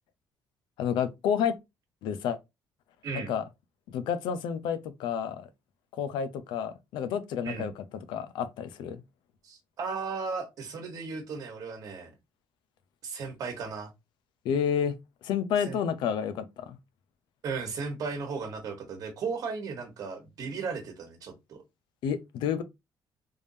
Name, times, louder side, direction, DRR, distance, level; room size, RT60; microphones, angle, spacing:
voice 1, 0.8-1.5 2.0-2.4 3.3-3.4 3.9-5.5 5.9-9.0 14.4-14.9 15.2-16.8 22.0-22.6, left 8 dB, 85° left, 0.6 m, -30 dB
voice 2, 9.4-12.1 13.0-13.9 15.7-15.8 17.4-21.6, right 5 dB, 50° right, 1.3 m, -35 dB
3.5 x 3.5 x 2.7 m
cardioid pair, 155°, 8 cm